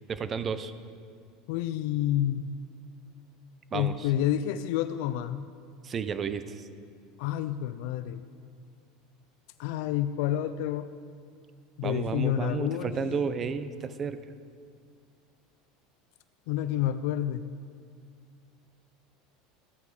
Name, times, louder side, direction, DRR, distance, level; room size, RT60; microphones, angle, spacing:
voice 1, 0.1-0.7 3.7-4.1 5.8-6.6 11.8-14.2, right 6 dB, 30° right, 12 dB, 0.6 m, -32 dB
voice 2, 1.5-2.5 3.7-5.5 7.2-8.2 9.6-10.9 11.8-13.3 16.5-17.5, left 11 dB, 70° left, 11 dB, 0.4 m, -29 dB
14.0 x 8.3 x 4.9 m, 2.2 s
supercardioid pair, 135°, 0 cm